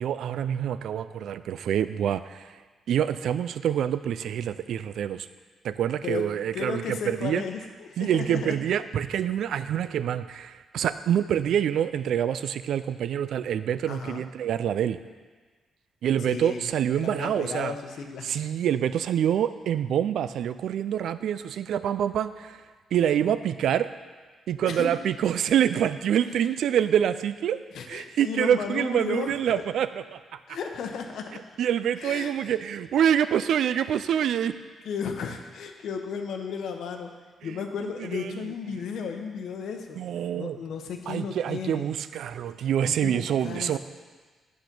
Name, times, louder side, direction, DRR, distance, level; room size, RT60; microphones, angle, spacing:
voice 1, 0.0-2.5 2.9-5.3 5.6-7.4 8.0-15.0 16.0-17.7 18.2-22.6 22.9-23.9 24.5-27.6 27.9-30.2 30.5-30.6 31.6-34.6 38.1-38.5 40.0-40.6 41.1-43.8, right 9 dB, 75° right, 13 dB, 0.3 m, -26 dB
voice 2, 6.5-8.6 13.9-14.2 16.2-16.7 17.0-18.3 24.6-24.9 26.3-26.4 27.7-29.6 30.5-31.4 32.0-32.5 34.8-37.1 37.4-40.1 40.3-42.0 42.8-43.8, left 6 dB, 75° left, 5 dB, 0.8 m, -34 dB
8.3 x 5.2 x 5.9 m, 1.4 s
cardioid pair, 130°, 0 cm